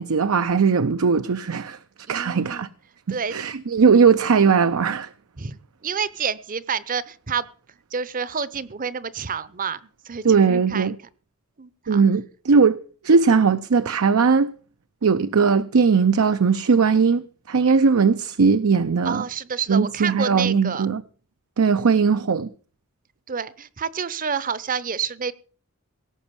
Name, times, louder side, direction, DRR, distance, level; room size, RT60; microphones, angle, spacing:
voice 1, 0.0-1.8 2.1-2.7 3.1-5.1 10.2-11.0 11.9-12.8 13.0-14.5 15.0-17.2 17.5-19.2 19.7-21.0 21.6-22.5, right 5 dB, 75° right, 0.6 m, -19 dB
voice 2, 2.1-2.7 3.1-3.5 5.4-7.5 7.9-9.8 10.1-10.9 11.6-12.0 19.0-20.9 21.8-22.0 23.3-25.3, right 6 dB, 40° right, 0.7 m, -29 dB
17.5 x 7.1 x 7.0 m
head